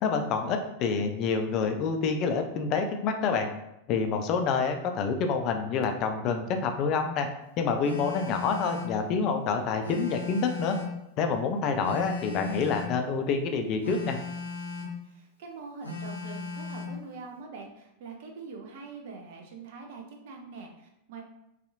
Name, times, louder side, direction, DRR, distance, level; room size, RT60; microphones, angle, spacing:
voice 1, 0.0-3.5 3.9-7.3 7.6-10.8 11.2-14.2, left 5 dB, 40° left, 5 dB, 0.3 m, -27 dB
Telephone, 7.8-9.0 9.8-11.0 11.8-13.0 13.8-15.0 15.8-17.0, left 4 dB, 80° left, 0.6 m, -37 dB
voice 2, 15.0-21.2, right 4 dB, 50° right, 2 dB, 0.5 m, -44 dB
2.6 x 2.4 x 2.6 m, 0.85 s
figure-of-eight pair, 90°, 0 cm